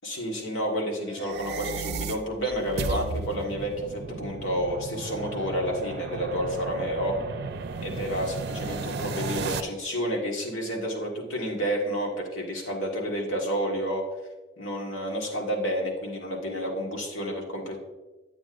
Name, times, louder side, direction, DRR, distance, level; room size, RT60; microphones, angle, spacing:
voice 1, 0.0-7.2 7.8-14.0 14.6-17.8, equal, 85° left, 0 dB, 1.6 m, -30 dB
sound 1, 1.1-9.6, right 4 dB, 60° right, 0.5 m, -34 dB
9.4 x 8.5 x 2.5 m, 1.2 s
head